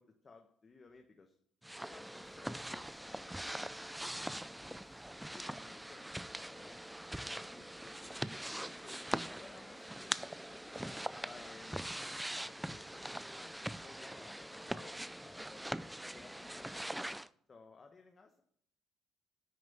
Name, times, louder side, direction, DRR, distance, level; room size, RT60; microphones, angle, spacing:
voice 1, 0.0-1.4 1.8-3.7 4.0-5.0 5.3-6.2 6.5-6.8 7.2-10.2 10.5-15.7 16.0-17.0 17.5-18.4, left 4 dB, 35° left, 5 dB, 1.2 m, -59 dB
sound 1, 1.6-17.3, right 1 dB, 5° right, 0.4 m, -42 dB
9.5 x 6.2 x 6.8 m, 0.66 s
supercardioid pair, 80°, 0 cm